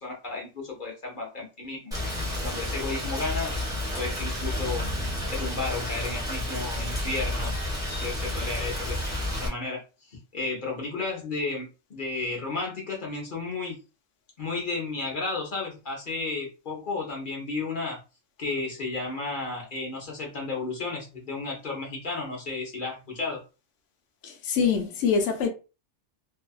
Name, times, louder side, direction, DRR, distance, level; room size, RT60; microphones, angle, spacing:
voice 1, 0.0-3.5 4.0-4.9 5.3-7.6 7.9-9.0 9.4-13.8 14.4-18.0 18.4-23.4, left 3 dB, 45° left, 0.9 m, -33 dB
Rain, 1.9-9.5, left 1 dB, 5° right, 0.8 m, -31 dB
voice 2, 24.2-25.5, left 6 dB, 75° left, 0.9 m, -24 dB
2.6 x 2.3 x 2.2 m
omnidirectional pair, 1.3 m